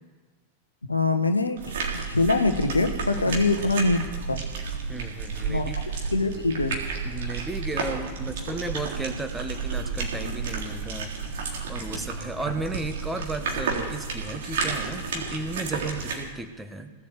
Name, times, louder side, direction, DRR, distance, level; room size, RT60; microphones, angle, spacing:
voice 1, 0.9-1.8 2.1-4.4 5.5-5.7 6.1-6.8, left 3 dB, 80° left, 7 dB, 0.9 m, -24 dB
sound 1, 1.6-16.2, right 4 dB, 60° right, 3.6 m, -31 dB
voice 2, 4.9-5.8 6.3-6.4 7.0-11.1 11.4-16.9, right 2 dB, 10° right, 7 dB, 1.4 m, -34 dB
18.0 x 8.5 x 8.1 m, 1.4 s
figure-of-eight pair, 90°, 0 cm